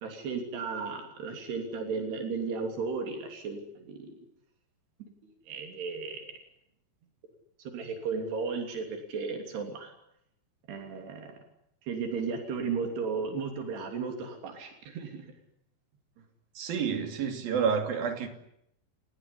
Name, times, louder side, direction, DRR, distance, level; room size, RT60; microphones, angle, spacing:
voice 1, 0.0-4.2 5.2-6.4 7.6-9.9 10.7-11.4 11.8-15.3, right 5 dB, 85° right, 4 dB, 5.2 m, -35 dB
voice 2, 16.6-18.3, right 6 dB, 65° right, 6 dB, 4.5 m, -29 dB
28.5 x 19.0 x 10.0 m, 0.79 s
omnidirectional pair, 4.6 m